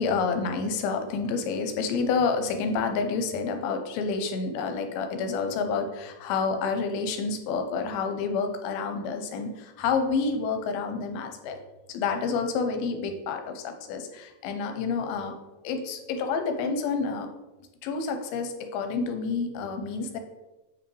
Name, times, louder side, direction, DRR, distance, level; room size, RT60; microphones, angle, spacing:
voice 1, 0.0-11.6 11.9-15.3 15.6-17.3 17.8-20.2, left 5 dB, 85° left, 6 dB, 2.5 m, -29 dB
7.7 x 5.1 x 3.2 m, 1.1 s
omnidirectional pair, 4.5 m